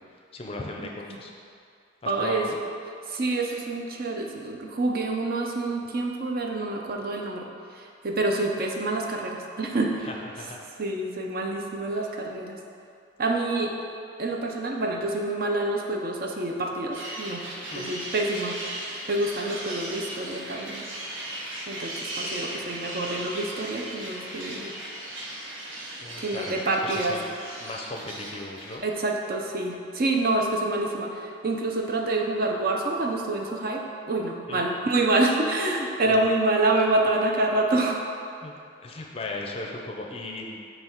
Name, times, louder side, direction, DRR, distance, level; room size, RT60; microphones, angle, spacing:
voice 1, 0.1-1.3 2.0-2.6 10.0-10.7 11.9-12.0 17.7-18.0 26.0-27.3 27.6-28.8 34.5-34.7 36.1-36.2 38.4-38.5 38.8-40.6, left 2 dB, 30° left, 0 dB, 0.5 m, -37 dB
voice 2, 2.1-2.5 3.1-7.5 7.7-10.1 10.8-12.6 13.2-13.7 14.2-17.4 17.7-20.8 21.7-24.7 26.2-27.2 28.8-38.0, right 2 dB, 50° right, 1 dB, 0.5 m, -27 dB
sound 1, 16.9-28.8, right 1 dB, 85° right, 1.0 m, -37 dB
6.8 x 3.2 x 4.5 m, 2.4 s
head